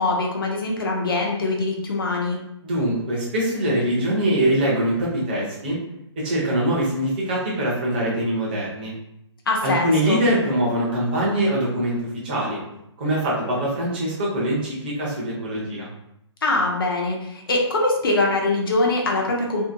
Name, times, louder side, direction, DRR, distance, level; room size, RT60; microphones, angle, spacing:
voice 1, 0.0-2.4 9.5-10.2 16.4-19.6, left 2 dB, 50° left, -1 dB, 0.5 m, -23 dB
voice 2, 2.6-5.8 6.2-8.9 9.6-12.0 12.2-12.6 13.0-15.9, right 1 dB, 20° right, -5 dB, 0.6 m, -23 dB
2.7 x 2.6 x 2.6 m, 0.80 s
hypercardioid pair, 175°, 15 cm